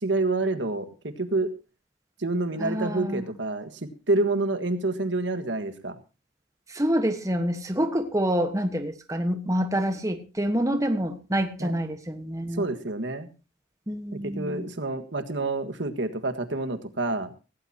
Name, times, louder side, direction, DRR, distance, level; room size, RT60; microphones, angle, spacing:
voice 1, 0.0-1.5 2.2-3.7 4.1-6.0 11.6-11.7 12.6-13.3 14.1-17.3, right 2 dB, 70° right, 9 dB, 1.6 m, -28 dB
voice 2, 2.6-3.2 6.7-12.7 13.9-14.7, equal, 15° right, 7 dB, 1.2 m, -27 dB
17.0 x 17.0 x 2.8 m, 0.31 s
head